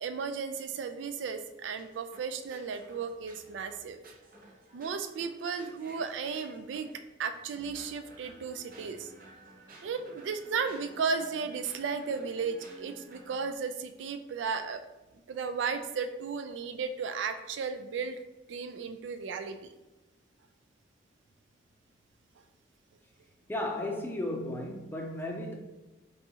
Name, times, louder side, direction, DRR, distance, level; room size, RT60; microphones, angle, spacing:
voice 1, 0.0-4.0 4.7-6.9 7.2-9.1 9.8-14.8 15.3-18.2 18.5-19.6, right 5 dB, 85° right, 0.3 m, -34 dB
sound 1, 1.8-7.0 7.5-13.6, right 1 dB, 50° right, 0.7 m, -54 dB
voice 2, 23.5-25.6, left 1 dB, 10° left, 0.5 m, -34 dB
4.0 x 3.6 x 2.8 m
head